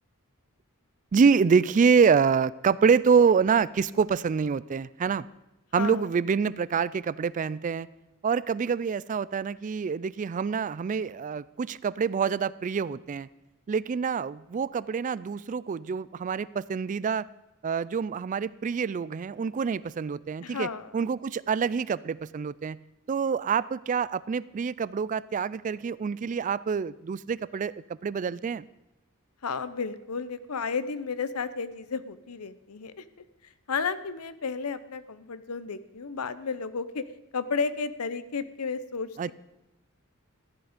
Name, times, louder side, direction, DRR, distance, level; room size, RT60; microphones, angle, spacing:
voice 1, 1.1-5.3 5.7-7.9 8.2-13.3 13.7-17.2 17.6-20.7 20.9-22.8 23.1-28.6 39.2-39.3, right 6 dB, 35° right, 19 dB, 0.3 m, -26 dB
voice 2, 5.8-6.1 20.4-20.9 29.4-33.0 33.7-37.0 37.3-39.1, left 5 dB, 85° left, 14 dB, 0.7 m, -32 dB
14.5 x 10.5 x 5.1 m, 0.98 s
head